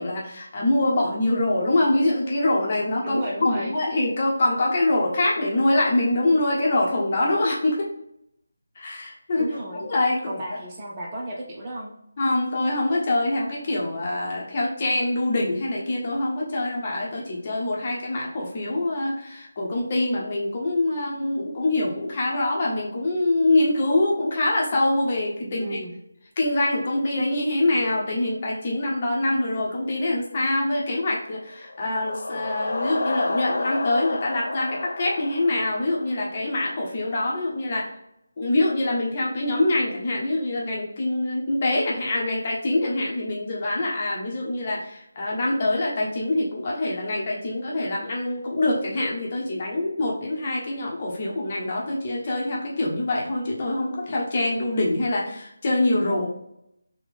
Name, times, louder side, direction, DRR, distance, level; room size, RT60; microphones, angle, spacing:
voice 1, 0.0-7.9 8.7-10.3 12.2-25.8 26.4-37.9 38.4-56.3, left 2 dB, 35° left, -3 dB, 1.1 m, -24 dB
voice 2, 3.0-3.7 9.4-9.8 10.3-11.9 25.4-25.9, right 1 dB, 25° right, -4 dB, 0.8 m, -33 dB
sound 1, 31.5-36.4, left 2 dB, 65° left, 0.4 m, -30 dB
3.5 x 3.3 x 3.5 m, 0.77 s
figure-of-eight pair, 160°, 0 cm